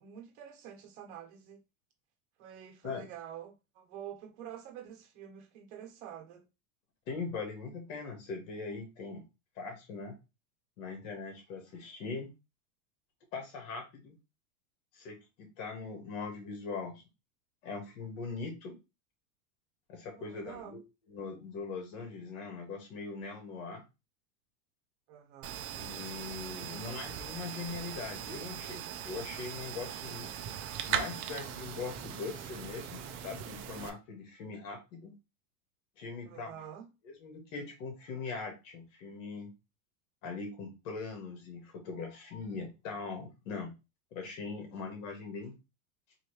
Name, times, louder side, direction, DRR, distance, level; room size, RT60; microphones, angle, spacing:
voice 1, 0.0-1.6 2.4-6.4 20.2-20.8 25.1-25.7 26.7-27.0 36.2-36.9, right 9 dB, 55° right, 1.3 m, -47 dB
voice 2, 7.1-9.2 9.6-10.2 10.8-12.3 13.3-14.1 14.9-17.0 17.6-18.8 19.9-20.8 21.1-23.8 25.7-30.3 30.9-35.1 36.0-36.6 37.0-39.5 40.2-43.7 44.1-45.6, left 4 dB, 65° left, 1.8 m, -41 dB
sound 1, 25.4-33.9, right 9 dB, 30° right, 0.5 m, -40 dB
3.9 x 3.0 x 3.1 m
supercardioid pair, 140°, 41 cm